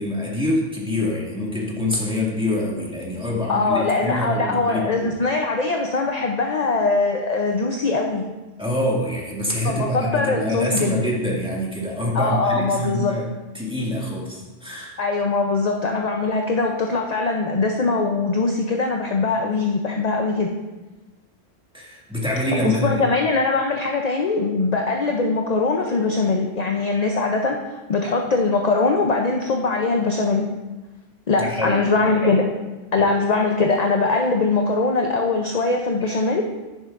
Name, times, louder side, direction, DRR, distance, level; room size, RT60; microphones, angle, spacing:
voice 1, 0.0-5.1 8.6-13.2 13.5-14.9 21.7-23.0 31.4-31.9 33.0-33.1 36.0-36.2, left 1 dB, 5° right, -5 dB, 2.0 m, -25 dB
voice 2, 3.5-8.3 9.6-11.0 12.1-13.2 15.0-20.5 22.5-27.6 27.9-30.5 31.3-32.5 32.9-36.5, left 3 dB, 45° left, 2 dB, 0.7 m, -21 dB
11.0 x 10.0 x 2.5 m, 1.1 s
omnidirectional pair, 1.1 m